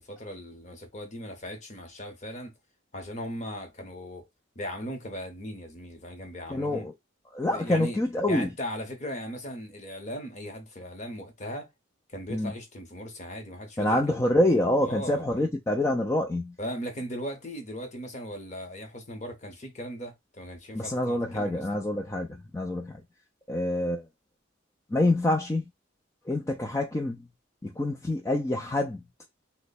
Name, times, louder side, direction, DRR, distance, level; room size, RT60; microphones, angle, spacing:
voice 1, 0.0-2.5 2.9-4.3 4.5-6.9 7.4-8.0 8.3-11.7 12.1-14.4 14.8-15.5 16.6-21.6, equal, 35° left, 0.9 m, -38 dB
voice 2, 6.5-6.9 7.3-8.5 12.3-12.5 13.8-16.5 20.7-22.3 22.5-23.0 23.5-24.1 24.9-25.6 26.3-27.3 27.6-29.0, left 1 dB, 15° left, 0.4 m, -26 dB
3.0 x 2.1 x 4.0 m
head